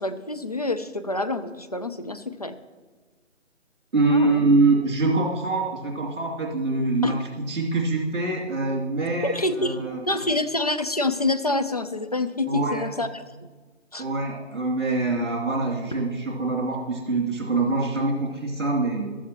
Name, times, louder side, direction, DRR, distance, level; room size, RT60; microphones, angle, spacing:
voice 1, 0.0-2.6 4.1-4.5 7.0-7.2 9.2-9.8 10.0-13.1 13.9-14.1, left 2 dB, 35° left, 10 dB, 0.5 m, -27 dB
voice 2, 3.9-10.0 12.5-12.9 14.0-19.2, right 3 dB, 65° right, -2 dB, 2.8 m, -24 dB
14.0 x 13.0 x 3.0 m, 1.3 s
figure-of-eight pair, 155°, 37 cm